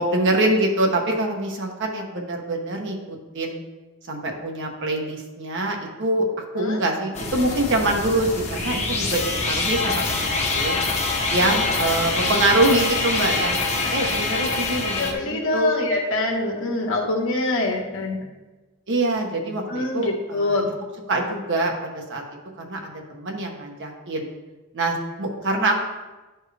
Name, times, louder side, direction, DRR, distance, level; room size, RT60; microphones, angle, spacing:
voice 1, 0.0-3.6 4.1-10.8 11.3-13.6 13.9-15.7 18.9-20.6 21.1-22.2 22.6-24.3 24.7-25.8, right 1 dB, 55° right, 1 dB, 1.0 m, -24 dB
sound 1, 7.1-15.1, left 3 dB, 30° left, 1.1 m, -25 dB
voice 2, 14.9-18.2 19.7-20.7 25.4-25.7, left 2 dB, 60° left, 0 dB, 1.4 m, -25 dB
11.5 x 4.5 x 3.3 m, 1.2 s
head